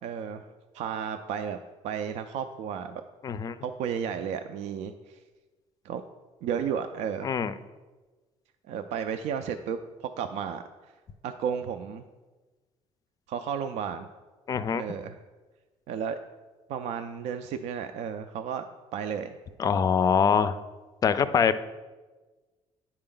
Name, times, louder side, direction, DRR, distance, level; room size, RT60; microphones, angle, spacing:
voice 1, 0.0-0.5 0.7-3.0 3.6-5.2 5.8-6.0 6.4-7.3 8.7-10.9 11.2-12.0 13.3-14.1 14.7-15.2 15.9-16.2 16.7-18.6 18.9-19.4, right 7 dB, 75° right, 7 dB, 0.4 m, -33 dB
voice 2, 3.2-3.6 7.2-7.5 14.5-14.8 19.6-20.6 21.0-21.6, left 6 dB, 30° left, 13 dB, 0.3 m, -24 dB
9.7 x 4.3 x 3.8 m, 1.3 s
cardioid pair, 135°, 12 cm